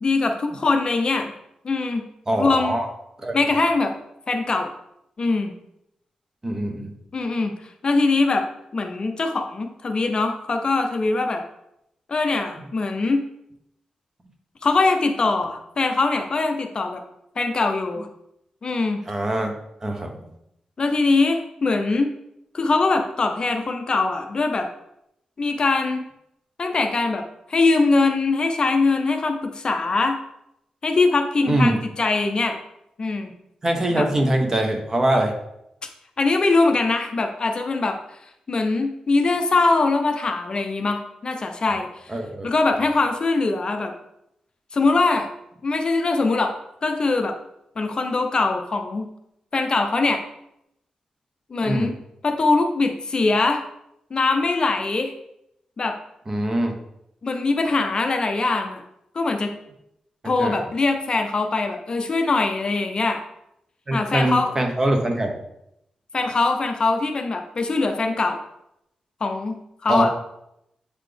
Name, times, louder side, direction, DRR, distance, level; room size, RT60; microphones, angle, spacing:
voice 1, 0.0-1.3 1.6-2.0 2.4-2.8 3.3-3.9 4.3-4.7 5.2-5.5 7.1-8.5 8.7-11.4 12.1-13.2 14.6-17.0 17.4-18.1 18.6-19.0 20.8-22.1 22.5-24.7 25.4-26.0 26.6-30.2 30.8-32.6 33.0-33.3 34.0-34.1 36.2-38.2 38.5-42.1 42.4-43.9 44.7-45.3 45.6-46.5 46.8-47.3 47.8-49.1 49.5-50.2 51.5-51.9 52.2-53.6 54.1-55.1 55.8-56.0 57.2-58.8 59.1-59.5 60.2-63.2 63.9-64.5 66.1-68.4 69.2-69.6 69.8-70.1, left 3 dB, 40° left, 5 dB, 0.5 m, -22 dB
voice 2, 2.3-2.9 3.2-3.4 6.4-6.9 19.1-19.5 19.8-20.3 31.5-31.8 33.6-35.3 41.7-41.8 42.1-42.5 51.6-51.9 56.3-56.7 60.2-60.6 63.9-65.3 69.9-70.1, right 1 dB, 25° right, 3 dB, 0.9 m, -23 dB
8.0 x 4.0 x 3.3 m, 0.81 s
wide cardioid pair, 140°, 2 cm